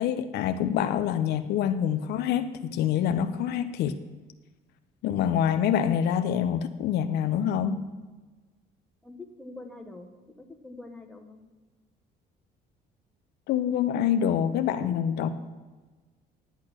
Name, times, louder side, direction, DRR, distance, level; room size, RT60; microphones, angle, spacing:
voice 1, 0.0-4.0 5.0-7.8 13.5-15.3, left 9 dB, 75° left, 9 dB, 0.7 m, -26 dB
voice 2, 9.0-10.1 10.4-11.4, left 2 dB, 5° left, 3 dB, 1.3 m, -44 dB
10.5 x 8.4 x 6.1 m, 1.3 s
cardioid pair, 110°, 17 cm